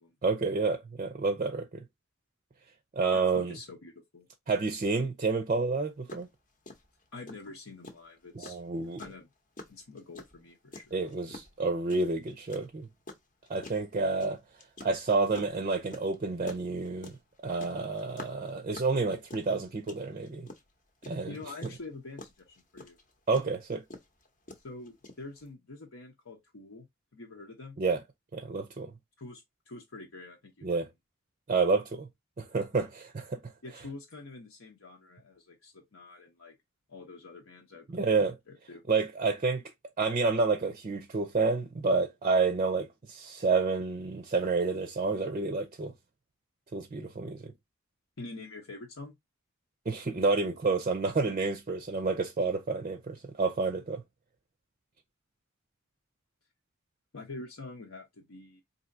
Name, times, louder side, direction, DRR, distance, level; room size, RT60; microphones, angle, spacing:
voice 1, 0.2-1.8 3.0-3.6 4.5-6.3 8.3-9.0 10.9-12.9 13.5-14.4 14.8-17.2 17.4-20.5 21.1-21.4 23.3-23.8 27.8-28.0 28.3-28.9 30.6-30.9 31.5-32.1 32.4-33.4 37.9-38.3 38.9-39.6 40.0-45.9 46.7-47.5 49.9-54.0, right 4 dB, 35° right, 0.5 m, -29 dB
voice 2, 3.1-4.3 7.1-8.6 9.0-9.3 9.7-11.0 21.3-23.0 24.6-26.9 27.1-27.8 29.2-30.8 33.6-36.5 36.9-38.8 48.2-49.1 57.1-58.6, left 3 dB, 75° left, 0.9 m, -46 dB
sound 1, 5.7-5.8 6.1-6.3 6.7-25.5, left 2 dB, 40° left, 0.8 m, -47 dB
4.2 x 2.7 x 2.6 m
head